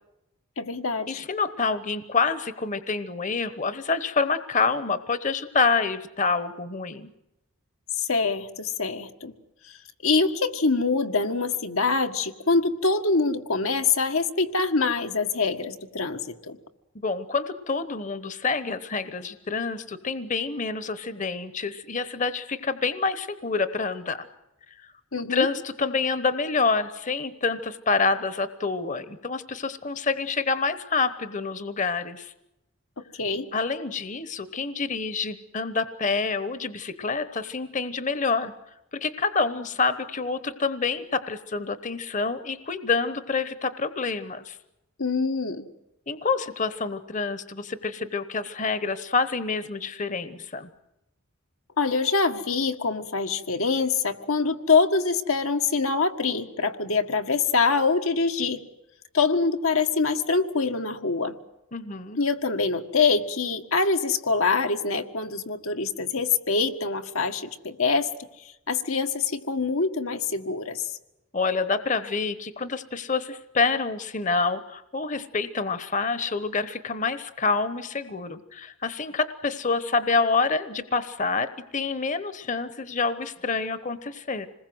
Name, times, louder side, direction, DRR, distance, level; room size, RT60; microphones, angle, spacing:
voice 1, 0.6-1.2 7.9-9.3 10.0-16.6 25.1-25.5 33.0-33.5 45.0-45.7 51.8-58.6 59.1-61.3 62.2-68.1 68.7-70.9, left 4 dB, 85° left, 5 dB, 1.8 m, -24 dB
voice 2, 1.1-7.1 16.9-24.3 24.8-24.9 25.3-32.3 33.5-38.5 38.9-44.6 46.1-50.7 61.7-62.2 71.3-84.5, left 4 dB, 35° left, 13 dB, 1.1 m, -27 dB
27.0 x 20.5 x 7.9 m, 0.91 s
head